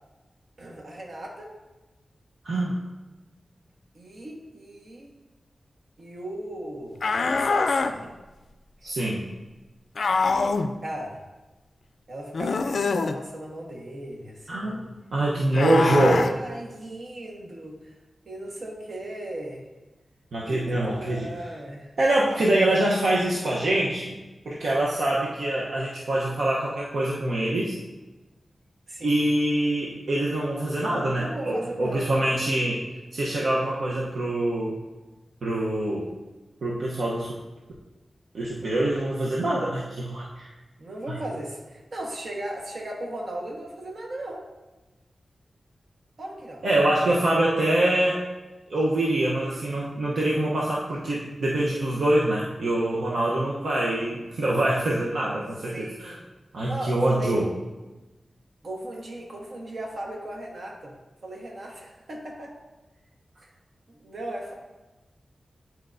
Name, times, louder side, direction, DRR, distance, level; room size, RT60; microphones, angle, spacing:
voice 1, 0.6-1.5 3.9-5.1 6.0-8.2 8.8-8.9 10.8-11.2 12.1-14.9 15.5-17.9 18.2-19.7 20.4-21.9 28.9-29.2 31.1-32.4 40.8-44.5 46.2-46.6 55.7-56.2 56.7-57.4 58.6-60.9 61.2-62.5 63.4-63.5 63.9-64.5, right 1 dB, 65° right, -1 dB, 1.2 m, -37 dB
voice 2, 2.4-2.7 8.8-9.3 14.5-14.8 15.1-16.3 20.3-21.3 22.0-24.2 24.4-27.8 29.0-32.8 33.1-34.8 35.4-36.1 36.6-37.4 38.3-40.5 41.1-41.2 46.6-48.2 48.7-56.2 56.5-57.5, right 1 dB, 80° right, -5 dB, 0.8 m, -24 dB
sound 1, 7.0-7.9 10.0-10.7 12.3-13.2 15.5-16.3, left 4 dB, 65° left, 0.3 m, -24 dB
9.8 x 4.5 x 2.6 m, 1.2 s
wide cardioid pair, 140°, 0 cm